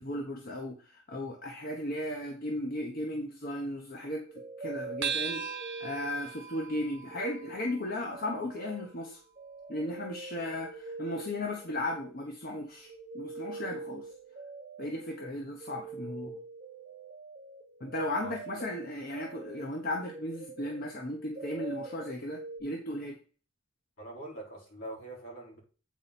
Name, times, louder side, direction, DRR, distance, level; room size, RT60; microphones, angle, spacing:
voice 1, 0.0-4.2 4.6-5.4 5.8-9.2 9.7-14.1 14.8-16.4 17.8-23.2, left 1 dB, 50° left, 2 dB, 1.0 m, -36 dB
sound 1, 4.2-6.6 6.9-22.6, right 3 dB, 35° right, 1.3 m, -45 dB
sound 2, 5.0-9.8, right 6 dB, 60° right, 1.0 m, -40 dB
voice 2, 18.2-18.6 24.0-25.6, right 1 dB, 70° left, -4 dB, 4.3 m, -44 dB
8.4 x 4.7 x 4.2 m, 0.38 s
head